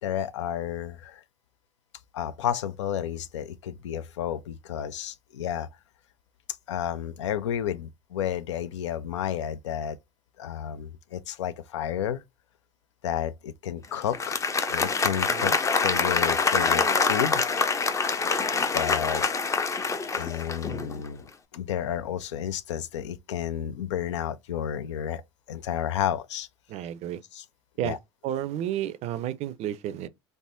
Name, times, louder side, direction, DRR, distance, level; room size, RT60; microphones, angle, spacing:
voice 1, 0.0-1.2 2.1-5.7 6.7-10.0 10.4-12.2 13.0-15.5 15.8-17.4 18.7-19.2 20.1-25.2 25.5-26.5 27.3-27.5 27.8-28.0, left 10 dB, 80° left, 0.4 m, -31 dB
Applause, 14.0-21.0, left 4 dB, 20° left, 0.5 m, -25 dB
voice 2, 26.7-27.2 27.8-27.9 28.2-30.1, right 11 dB, 45° right, 0.4 m, -31 dB
3.4 x 2.1 x 2.5 m
hypercardioid pair, 75°, 15 cm